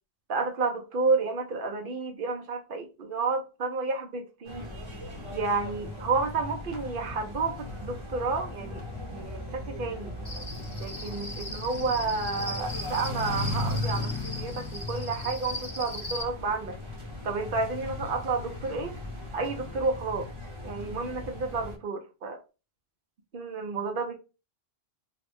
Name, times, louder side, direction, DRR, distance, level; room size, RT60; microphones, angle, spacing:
voice 1, 0.3-4.7 5.3-8.8 9.1-10.2 10.8-16.8 17.2-19.0 19.3-20.3 20.6-22.4 23.3-24.1, right 4 dB, 60° right, 0.9 m, -31 dB
sound 1, 4.4-21.8, left 2 dB, 30° right, 1.0 m, -37 dB
Cricket, 10.2-16.2, left 1 dB, 65° left, 1.4 m, -39 dB
3.2 x 2.3 x 3.4 m
omnidirectional pair, 1.0 m